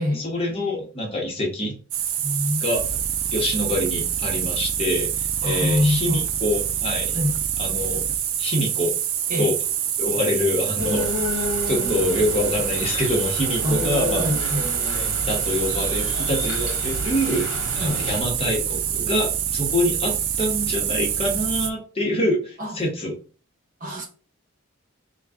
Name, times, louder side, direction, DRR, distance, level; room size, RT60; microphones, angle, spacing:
voice 1, 0.0-1.8 2.6-2.8 3.3-7.2 7.6-8.1 8.4-8.9 9.4-9.6 10.0-14.3 14.9-23.1, left 1 dB, 25° left, -1 dB, 1.0 m, -26 dB
sound 1, 1.9-21.7, right 9 dB, 70° right, 0.4 m, -26 dB
voice 2, 2.2-2.7 5.4-6.2 7.1-7.4 9.3-9.5 13.6-13.8 14.2-14.7 17.7-18.0 22.6-22.8 23.8-24.1, left 1 dB, 40° right, 0 dB, 0.9 m, -25 dB
sound 2, 10.8-18.2, left 2 dB, 90° left, 1.0 m, -30 dB
3.7 x 2.3 x 3.4 m, 0.37 s
head